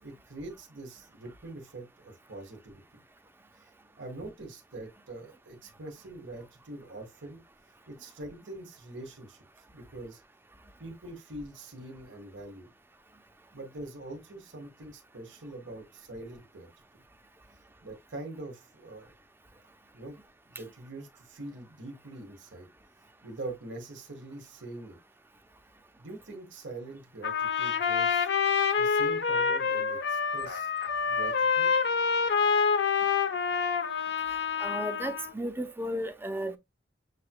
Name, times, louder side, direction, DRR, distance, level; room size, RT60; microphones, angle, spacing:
voice 1, 0.0-3.0 3.5-3.7 4.0-7.4 7.9-9.4 9.7-10.2 10.8-12.7 13.5-16.7 17.8-19.1 19.9-20.2 20.5-22.7 23.2-25.0 26.0-28.3 28.8-30.7 31.1-31.7, right 2 dB, 80° right, 1.5 m, -43 dB
Trumpet, 27.2-35.3, left 6 dB, 65° left, 0.7 m, -27 dB
voice 2, 34.6-36.6, equal, 10° right, 0.7 m, -34 dB
7.4 x 3.0 x 2.2 m
head